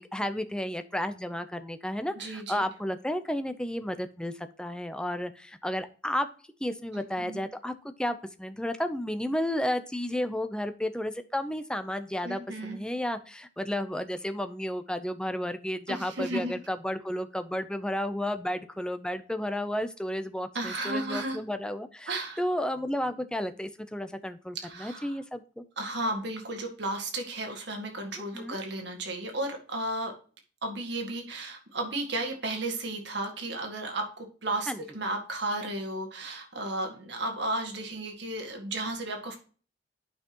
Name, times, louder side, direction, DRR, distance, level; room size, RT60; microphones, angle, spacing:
voice 1, 0.0-6.3 6.6-7.7 8.0-25.6 28.2-28.6 34.7-34.8, left 1 dB, 5° left, 9 dB, 0.6 m, -32 dB
voice 2, 2.2-2.7 7.2-7.4 12.2-12.8 15.9-16.5 20.5-21.4 22.1-22.4 24.6-25.2 25.8-30.1 30.6-39.4, right 2 dB, 65° right, 3 dB, 1.8 m, -34 dB
9.4 x 5.6 x 3.0 m, 0.38 s
head